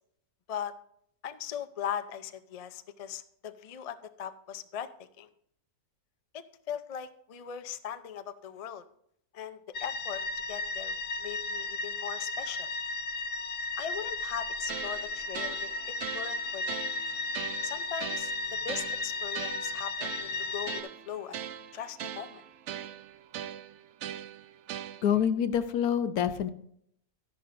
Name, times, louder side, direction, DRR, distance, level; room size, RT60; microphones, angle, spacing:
voice 1, 1.2-4.9 5.2-5.3 6.3-8.8 9.3-10.2 10.5-12.7 13.8-15.7 16.1-16.8 17.6-21.4 21.7-22.4, left 9 dB, 70° left, 11 dB, 0.3 m, -39 dB
sound 1, 9.7-20.8, left 3 dB, 50° left, 0.8 m, -35 dB
sound 2, 14.7-25.3, right 10 dB, 65° right, 0.7 m, -41 dB
voice 2, 25.0-26.5, left 9 dB, 90° left, 11 dB, 1.2 m, -26 dB
12.5 x 10.5 x 2.6 m, 0.69 s
omnidirectional pair, 1.6 m